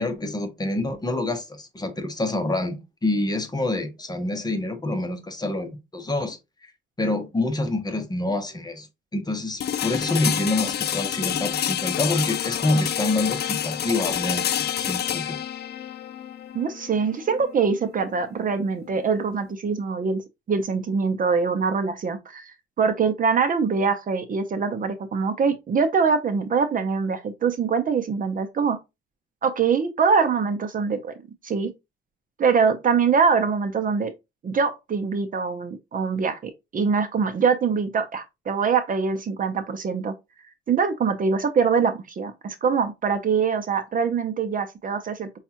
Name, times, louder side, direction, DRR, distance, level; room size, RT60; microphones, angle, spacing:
voice 1, 0.0-6.4 7.0-15.4, left 2 dB, 20° left, 0.9 m, -27 dB
sound 1, 9.6-19.5, left 10 dB, 55° left, 0.5 m, -28 dB
voice 2, 16.5-20.2 20.5-28.8 29.4-31.1 31.4-31.7 32.4-34.1 34.4-40.1 40.7-45.4, right 5 dB, 45° right, 0.7 m, -23 dB
5.2 x 2.4 x 2.8 m
cardioid pair, 90°, 20 cm